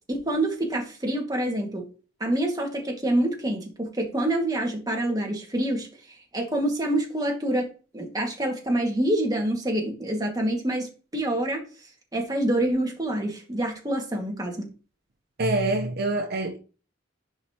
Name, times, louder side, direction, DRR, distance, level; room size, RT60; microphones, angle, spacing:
voice 1, 0.1-1.8 2.2-5.9 6.3-7.7 7.9-11.6 12.1-14.7, right 1 dB, 20° right, 2.0 m, -26 dB
voice 2, 15.4-16.6, right 2 dB, 55° right, 0.9 m, -25 dB
10.5 x 5.2 x 3.0 m
head